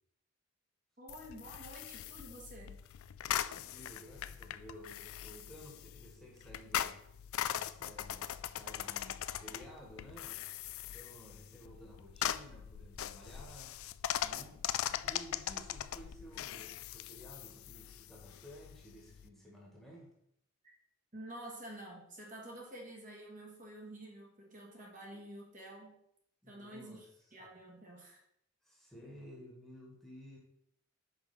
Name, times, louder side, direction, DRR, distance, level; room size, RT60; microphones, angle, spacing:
voice 1, 1.0-2.8 21.1-26.0 26.5-28.2, right 1 dB, 35° right, -2 dB, 1.5 m, -49 dB
sound 1, 1.1-19.3, left 11 dB, 80° left, 0.3 m, -41 dB
voice 2, 3.3-7.0 7.5-10.4 10.9-13.8 14.2-14.6 15.0-20.1 25.1-25.2 26.4-27.1 27.4-27.5 28.6-30.4, equal, ahead, -3 dB, 1.6 m, -54 dB
5.5 x 5.1 x 5.8 m, 0.75 s
head